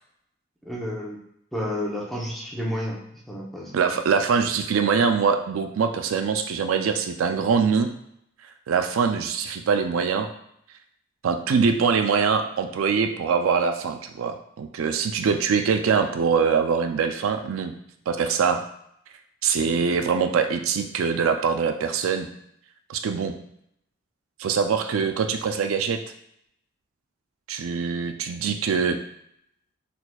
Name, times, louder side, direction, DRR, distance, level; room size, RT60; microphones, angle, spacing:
voice 1, 0.6-1.2 1.5-3.0 3.3-3.7, left 1 dB, ahead, -4 dB, 0.8 m, -30 dB
voice 2, 3.7-7.9 8.7-10.3 11.2-17.7 18.1-18.6 19.4-22.3 22.9-23.4 24.4-26.0 27.5-29.0, right 6 dB, 85° right, 7 dB, 0.4 m, -23 dB
4.2 x 4.2 x 2.3 m, 0.74 s
head